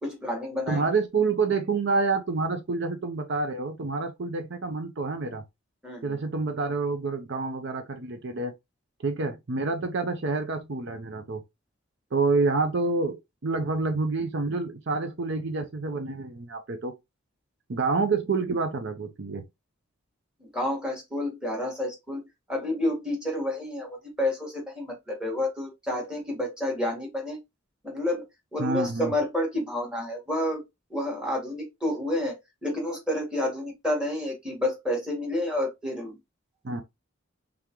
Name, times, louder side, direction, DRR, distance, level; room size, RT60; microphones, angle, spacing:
voice 1, 0.0-0.8 5.8-6.2 20.4-22.2 22.5-27.4 27.8-28.2 28.5-30.6 30.9-36.2, left 1 dB, 5° right, 1.7 m, -30 dB
voice 2, 0.7-5.4 6.0-8.5 9.0-11.4 12.1-16.9 17.7-19.4 28.6-29.1 36.6-36.8, right 3 dB, 60° right, 0.6 m, -28 dB
3.7 x 3.4 x 3.0 m
head